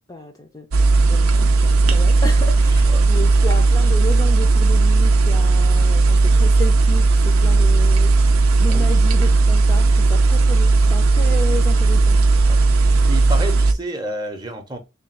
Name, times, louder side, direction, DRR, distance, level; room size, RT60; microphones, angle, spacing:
voice 1, 0.1-8.1 8.6-12.2, left 1 dB, 15° left, 0.4 m, -32 dB
sound 1, 0.7-13.7, right 3 dB, 85° right, 0.5 m, -15 dB
voice 2, 8.7-9.1 12.5-12.6 13.1-14.8, right 1 dB, 20° right, 0.7 m, -30 dB
3.4 x 2.3 x 4.1 m
head